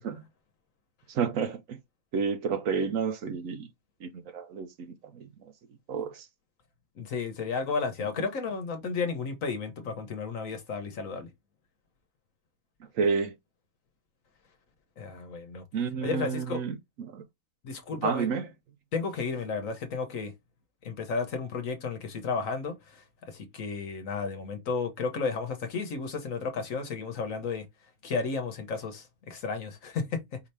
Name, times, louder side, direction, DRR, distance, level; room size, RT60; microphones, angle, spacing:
voice 1, 1.1-1.8 2.1-3.7 4.0-5.3 5.9-6.2 13.0-13.3 15.7-16.8 17.1-17.2 18.0-18.5, right 6 dB, 70° right, 1.0 m, -30 dB
voice 2, 7.0-11.3 15.0-15.6 16.0-16.6 17.6-18.3 18.9-20.3 20.8-27.7 28.0-30.4, left 4 dB, 65° left, 1.3 m, -33 dB
4.8 x 2.8 x 3.3 m
omnidirectional pair, 1.6 m